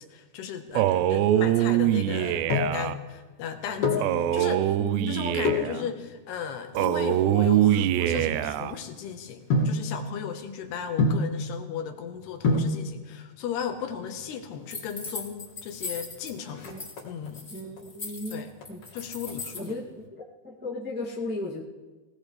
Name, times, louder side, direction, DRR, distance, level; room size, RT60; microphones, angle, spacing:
voice 1, 0.0-4.0 4.3-4.8 5.1-16.7 17.0-17.5 18.3-18.5 18.9-19.8, left 8 dB, 75° left, 6 dB, 3.1 m, -36 dB
Male speech man speaking, 0.7-3.0 4.0-5.8 6.7-8.7, right 12 dB, 85° right, 2.7 m, -23 dB
sound 1, 2.1-2.9 3.6-4.2 5.4-5.8 6.5-8.9 9.5-9.9 11.0-11.4 12.1-12.2 12.4-12.8 13.9-14.5 14.8-14.9 15.1-15.2 15.6-16.0 16.3-17.3 17.8-18.2 18.6-19.7 20.0-20.1, left 2 dB, 55° left, 3.4 m, -27 dB
voice 2, 3.8-4.2 4.8-5.9 16.6-16.8 17.5-18.4 18.7-18.8 19.5-19.9 20.1-21.6, left 1 dB, 15° right, -5 dB, 0.3 m, -36 dB
sound 2, 14.7-16.3 16.6-17.0 17.3-19.7, left 4 dB, 25° left, 1.9 m, -38 dB
23.0 x 18.0 x 3.3 m, 1.3 s
omnidirectional pair, 4.9 m